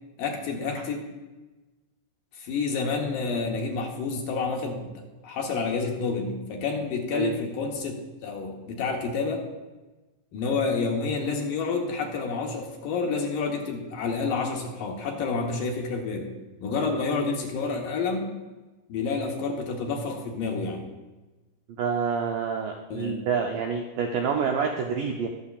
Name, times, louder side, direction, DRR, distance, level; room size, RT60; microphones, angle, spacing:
voice 1, 0.2-1.1 2.4-4.8 5.2-9.4 10.3-16.3 16.6-18.3 18.9-20.8 22.9-23.2, left 4 dB, 65° left, 1 dB, 2.4 m, -29 dB
voice 2, 21.8-25.3, right 6 dB, 85° right, 2 dB, 1.8 m, -27 dB
21.5 x 7.1 x 2.4 m, 1.2 s
omnidirectional pair, 4.7 m